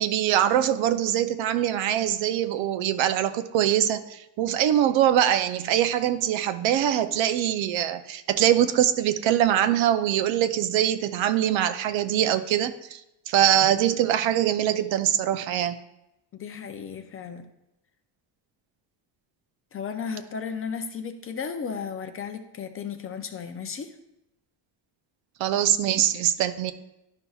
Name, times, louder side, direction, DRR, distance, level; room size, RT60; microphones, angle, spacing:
voice 1, 0.0-13.0 13.3-15.8 25.4-26.7, right 11 dB, 80° right, 10 dB, 0.6 m, -23 dB
voice 2, 16.3-17.5 19.7-24.0, left 6 dB, 30° left, 8 dB, 0.4 m, -34 dB
11.5 x 5.5 x 2.3 m, 0.88 s
cardioid pair, 155°, 45 cm